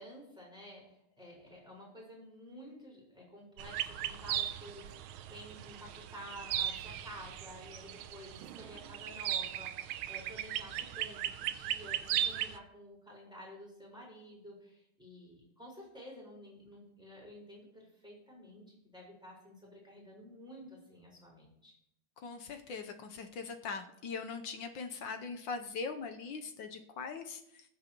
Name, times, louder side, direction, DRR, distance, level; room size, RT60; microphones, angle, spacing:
voice 1, 0.0-21.7, equal, ahead, -3 dB, 4.6 m, -51 dB
sound 1, 3.6-12.6, right 11 dB, 75° right, 1.4 m, -37 dB
voice 2, 22.2-27.6, left 5 dB, 65° left, 6 dB, 1.4 m, -41 dB
20.0 x 7.9 x 3.0 m, 0.78 s
omnidirectional pair, 2.4 m